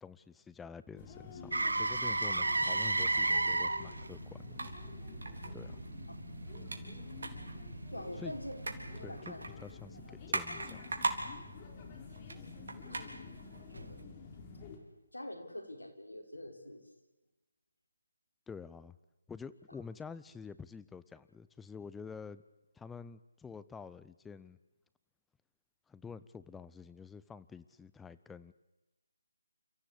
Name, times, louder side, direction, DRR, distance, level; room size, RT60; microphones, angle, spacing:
voice 1, 0.0-4.6 5.5-5.8 8.2-8.3 9.0-10.8 18.5-19.0 19.3-22.4 22.8-24.6 25.9-28.5, left 5 dB, 5° left, 14 dB, 0.7 m, -48 dB
sound 1, 0.9-14.8, left 4 dB, 25° left, 3.7 m, -49 dB
Motor vehicle (road), 1.5-9.4 13.8-13.9, right 2 dB, 80° right, 1.5 m, -35 dB
sound 2, 4.0-14.0, right 3 dB, 60° right, 3.9 m, -43 dB
voice 2, 7.9-8.6 9.0-9.5 12.9-13.2 13.7-14.1 15.1-16.8, left 1 dB, 85° left, 4 dB, 5.1 m, -45 dB
29.5 x 15.0 x 8.5 m, 1.1 s
figure-of-eight pair, 150°, 0 cm